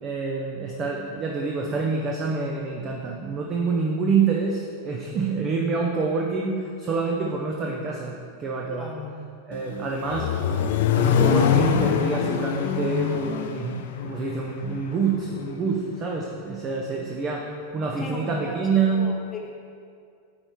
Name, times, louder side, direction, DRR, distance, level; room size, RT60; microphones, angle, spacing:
voice 1, 0.0-8.9 9.5-10.4 10.8-19.1, right 4 dB, 30° right, 0 dB, 0.6 m, -27 dB
voice 2, 8.6-9.2 18.0-18.6 18.9-19.5, left 3 dB, 20° left, 0 dB, 0.7 m, -37 dB
Accelerating revving vroom, 9.5-15.5, left 8 dB, 55° left, 0.4 m, -24 dB
9.5 x 3.3 x 4.5 m, 2.3 s
figure-of-eight pair, 90°, 0 cm